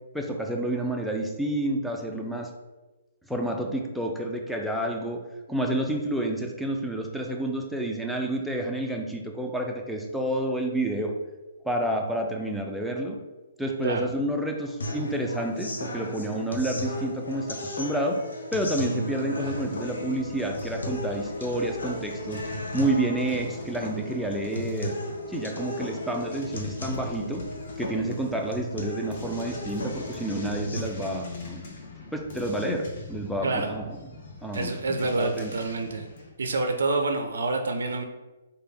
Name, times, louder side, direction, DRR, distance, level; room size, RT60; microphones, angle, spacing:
voice 1, 0.1-2.5 3.3-5.2 5.5-11.1 11.6-13.2 13.6-18.2 18.5-22.4 22.7-25.0 25.3-27.4 27.8-31.6 32.1-34.0 34.4-34.7 35.2-35.5, right 1 dB, ahead, 0 dB, 0.4 m, -29 dB
sound 1, 14.8-30.8, left 1 dB, 80° left, 0.6 m, -35 dB
sound 2, 19.4-36.3, left 2 dB, 50° left, 0.9 m, -43 dB
voice 2, 34.5-36.1 36.4-38.0, right 3 dB, 70° right, 5 dB, 0.4 m, -27 dB
3.2 x 2.2 x 3.3 m, 1.1 s
hypercardioid pair, 130°, 0 cm